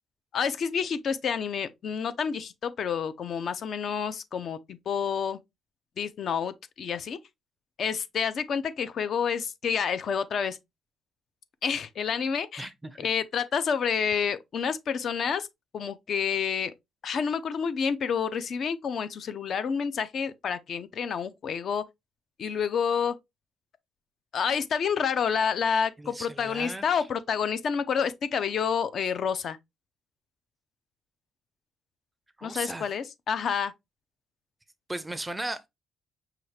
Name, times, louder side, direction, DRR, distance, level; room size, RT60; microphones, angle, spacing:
voice 1, 0.3-5.4 6.0-7.2 7.8-10.6 11.6-12.7 13.0-15.5 15.7-16.7 17.0-21.8 22.4-23.2 24.3-29.6 32.4-33.7, left 7 dB, 50° left, 0.6 m, -29 dB
voice 2, 12.6-13.1 26.0-27.1 32.4-32.9 34.9-35.7, right 2 dB, 10° right, 0.5 m, -36 dB
5.8 x 2.4 x 3.3 m
cardioid pair, 135°, 0 cm